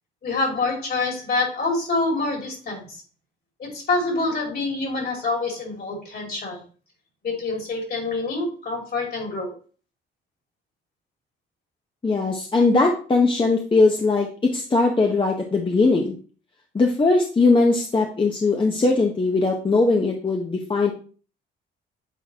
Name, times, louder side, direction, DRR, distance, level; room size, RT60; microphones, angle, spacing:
voice 1, 0.2-3.0 3.6-6.6 7.2-9.5, left 3 dB, 50° left, 0 dB, 2.9 m, -26 dB
voice 2, 12.0-16.1 16.7-20.9, left 3 dB, 25° left, 1 dB, 0.9 m, -20 dB
8.3 x 4.0 x 2.9 m, 0.39 s
cardioid pair, 90°, 20 cm